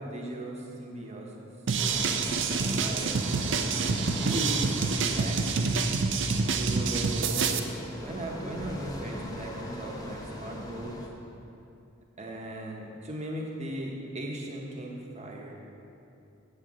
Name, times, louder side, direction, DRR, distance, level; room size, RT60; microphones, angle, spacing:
voice 1, 0.0-1.5 1.8-2.1 2.7-3.2 4.2-5.5 6.5-7.4 8.0-11.0 12.2-15.5, right 1 dB, 35° right, 0 dB, 0.9 m, -37 dB
sound 1, 1.7-7.6, right 4 dB, 60° right, 0.4 m, -27 dB
sound 2, 1.8-11.1, left 1 dB, 20° left, 0.7 m, -40 dB
7.8 x 7.7 x 3.7 m, 2.7 s
head